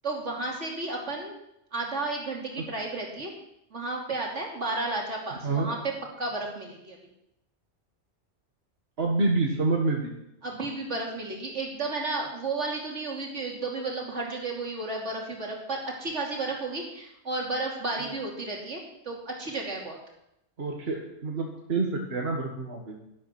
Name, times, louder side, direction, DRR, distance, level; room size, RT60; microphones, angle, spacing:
voice 1, 0.0-1.4 1.7-3.3 3.7-5.9 6.2-7.0 10.4-18.8 19.0-20.0, right 3 dB, 80° right, -1 dB, 3.2 m, -32 dB
voice 2, 9.0-10.1 20.6-23.0, right 3 dB, 60° right, 0 dB, 1.9 m, -27 dB
12.0 x 12.0 x 6.0 m, 0.84 s
omnidirectional pair, 1.2 m